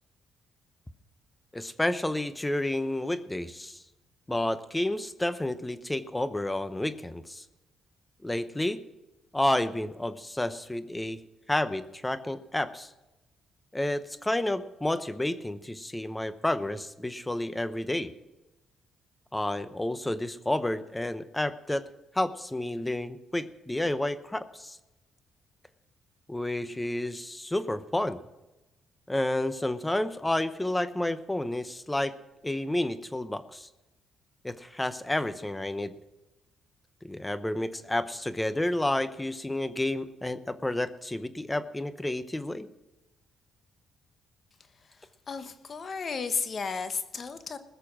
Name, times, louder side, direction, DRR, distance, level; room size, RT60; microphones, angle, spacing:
voice 1, 1.5-3.8 4.3-7.4 8.2-8.8 9.3-11.2 11.5-12.9 13.7-18.1 19.3-21.8 22.1-24.8 26.3-28.2 29.1-32.1 32.4-33.7 34.4-36.0 37.0-42.7, left 1 dB, 10° left, 12 dB, 0.8 m, -30 dB
voice 2, 45.3-47.6, left 5 dB, 45° left, 10 dB, 1.2 m, -33 dB
20.0 x 6.8 x 6.2 m, 1.0 s
cardioid pair, 90°, 0 cm